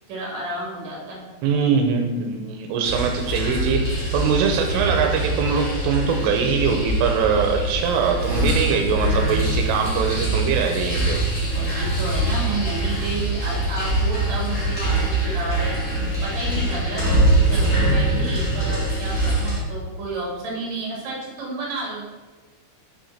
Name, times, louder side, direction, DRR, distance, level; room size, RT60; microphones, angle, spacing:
voice 1, 0.1-1.2 11.5-15.8 16.2-22.0, right 2 dB, 40° right, -4 dB, 3.3 m, -31 dB
voice 2, 1.4-11.2, right 6 dB, 85° right, 3 dB, 3.3 m, -22 dB
sound 1, 2.8-19.6, right 1 dB, 30° left, 1.8 m, -23 dB
8.6 x 5.9 x 4.3 m, 1.3 s
omnidirectional pair, 5.9 m